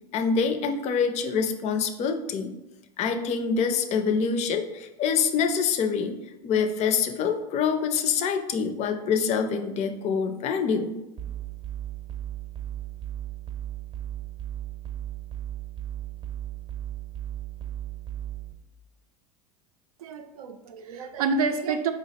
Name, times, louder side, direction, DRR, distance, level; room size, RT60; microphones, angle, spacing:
voice 1, 0.1-2.5 3.0-6.2 6.4-11.0, left 6 dB, 40° left, 6 dB, 0.4 m, -25 dB
sound 1, 11.2-18.5, right 12 dB, 25° right, 0.7 m, -36 dB
voice 2, 20.0-21.9, right 4 dB, 85° right, 7 dB, 0.5 m, -28 dB
4.6 x 2.0 x 4.1 m, 0.99 s
hypercardioid pair, 95°, 18 cm